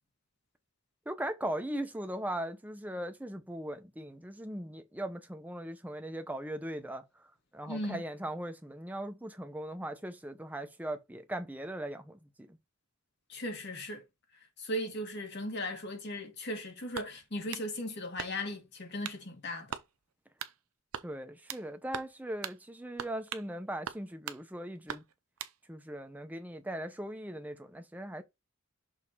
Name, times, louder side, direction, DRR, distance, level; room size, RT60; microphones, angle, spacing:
voice 1, 1.1-7.1 7.5-12.2 21.0-25.0 25.7-28.2, right 1 dB, 5° right, 0.8 m, -39 dB
voice 2, 7.7-8.0 13.3-14.0 14.6-19.7, left 1 dB, 50° left, 2.1 m, -37 dB
sound 1, 16.9-17.7 18.2-18.6 19.0-19.2 19.7-19.9 20.4-20.6 20.9-21.7 21.9-22.2 22.4-22.6 23.0-23.5 23.9-24.4 24.9-25.6, right 8 dB, 80° right, 0.7 m, -41 dB
6.5 x 3.6 x 4.1 m
head